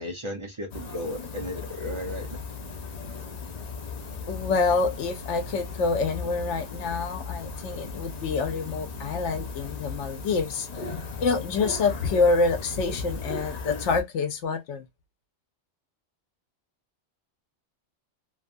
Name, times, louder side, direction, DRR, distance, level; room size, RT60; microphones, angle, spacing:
voice 1, 0.0-2.3, left 1 dB, 30° right, 0.6 m, -34 dB
sound 1, 0.7-14.0, left 4 dB, 45° left, 0.6 m, -37 dB
voice 2, 4.3-10.7 11.2-14.9, left 4 dB, 85° left, 1.1 m, -26 dB
2.9 x 2.4 x 2.5 m
omnidirectional pair, 1.2 m